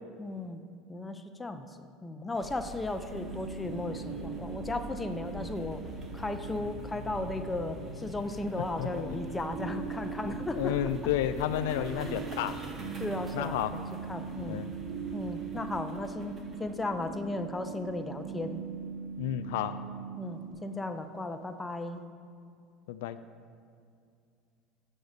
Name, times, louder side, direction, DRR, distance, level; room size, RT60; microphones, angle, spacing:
voice 1, 0.2-0.6 0.9-1.7 2.0-5.8 6.1-10.9 12.0-12.2 13.0-13.8 14.1-14.6 15.1-18.6 20.2-22.0, left 2 dB, 15° left, 7 dB, 0.6 m, -36 dB
sound 1, 2.3-19.6, equal, 30° right, 1.1 m, -46 dB
sound 2, 3.1-20.5, right 6 dB, 80° right, 1.5 m, -41 dB
voice 2, 8.8-9.2 10.6-12.6 12.8-13.0 13.3-13.7 14.5-14.7 19.2-19.8 22.9-23.2, left 11 dB, 80° left, 11 dB, 0.3 m, -31 dB
7.0 x 5.4 x 6.5 m, 2.4 s
supercardioid pair, 105°, 0 cm